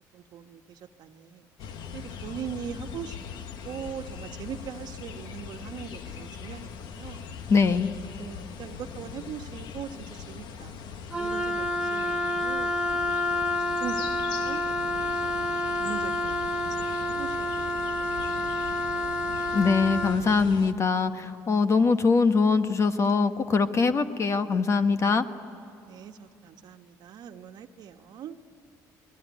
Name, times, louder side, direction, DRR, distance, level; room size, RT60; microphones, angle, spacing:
voice 1, 0.1-1.5 1.9-3.2 3.6-7.2 8.1-10.8 11.2-13.0 13.3-14.6 15.2-16.3 16.6-18.0 18.3-18.5 21.9-22.3 25.9-28.4, right 8 dB, 65° right, 6 dB, 1.4 m, -41 dB
sound 1, 1.6-20.7, left 7 dB, 70° left, 1.4 m, -41 dB
voice 2, 7.5-7.9 19.5-25.2, left 4 dB, 40° left, 9 dB, 1.4 m, -23 dB
Wind instrument woodwind instrument, 11.1-20.2, left 1 dB, 15° right, 1.1 m, -29 dB
28.5 x 21.0 x 9.5 m, 2.7 s
supercardioid pair, 90°, 8 cm